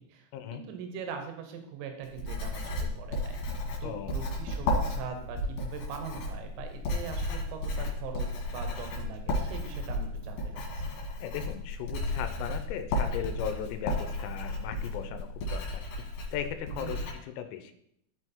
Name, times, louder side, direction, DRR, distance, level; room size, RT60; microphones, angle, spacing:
voice 1, 0.0-11.0 16.7-17.1, right 6 dB, 80° right, 5 dB, 3.7 m, -42 dB
Writing, 2.0-17.1, left 1 dB, 60° left, 3.4 m, -33 dB
voice 2, 3.8-4.2 11.2-16.1 16.3-17.7, left 9 dB, 90° left, 8 dB, 3.4 m, -37 dB
12.0 x 4.5 x 4.4 m, 0.74 s
omnidirectional pair, 5.9 m